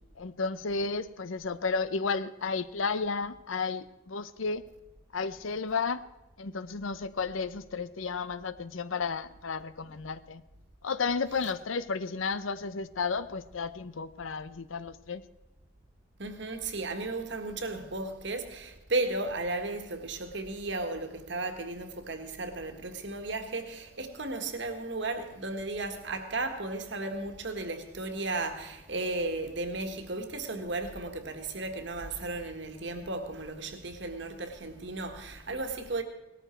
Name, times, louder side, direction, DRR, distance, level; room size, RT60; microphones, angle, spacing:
voice 1, 0.2-4.6 5.1-6.1 6.4-10.4 10.8-15.2, left 4 dB, 75° left, 0.7 m, -32 dB
voice 2, 16.2-36.0, right 2 dB, 60° right, 1.7 m, -35 dB
18.5 x 13.5 x 4.5 m
head